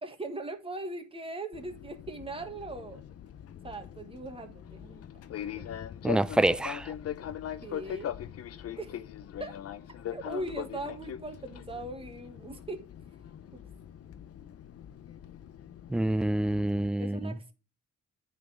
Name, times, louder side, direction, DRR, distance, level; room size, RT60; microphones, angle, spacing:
voice 1, 0.0-3.0 3.6-5.0 5.5-5.7 7.6-8.1 8.8-9.0 9.4-9.5 10.1-12.8 13.5-13.6 17.0-17.5, right 2 dB, 20° right, 1.5 m, -40 dB
Fixed-wing aircraft airplane, 1.5-16.9, left 10 dB, 50° left, 0.6 m, -41 dB
voice 2, 6.0-6.9 15.9-17.3, right 1 dB, 5° right, 0.4 m, -27 dB
9.3 x 4.0 x 6.1 m
cardioid pair, 90°, 30 cm